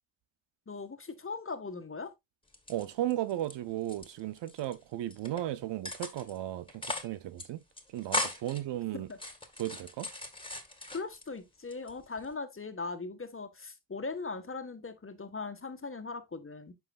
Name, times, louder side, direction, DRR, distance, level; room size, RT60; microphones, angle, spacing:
voice 1, 0.7-2.1 9.1-9.2 10.9-16.7, left 4 dB, 30° left, 1.6 m, -39 dB
sound 1, 2.5-3.5 3.8-4.7 5.1-5.4 5.8-6.4 6.7-7.1 7.4-7.5 7.8-8.6 9.1-11.3 11.7-12.3, left 2 dB, 10° left, 1.9 m, -38 dB
voice 2, 2.7-7.6 7.9-9.1 9.6-10.1, right 13 dB, 75° right, 0.7 m, -35 dB
9.4 x 5.6 x 2.4 m
supercardioid pair, 45°, 43 cm